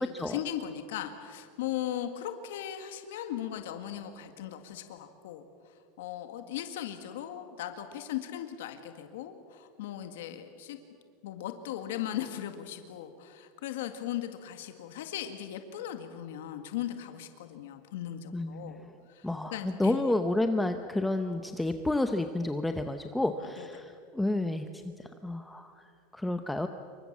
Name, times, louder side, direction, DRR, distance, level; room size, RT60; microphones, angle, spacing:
voice 1, 0.0-10.8 11.2-18.8 19.1-20.0 23.6-23.7, left 11 dB, 85° left, 7 dB, 1.9 m, -38 dB
voice 2, 18.3-18.9 19.2-26.7, left 2 dB, 5° left, 7 dB, 0.8 m, -31 dB
27.5 x 24.0 x 7.4 m, 2.3 s
supercardioid pair, 160°, 0 cm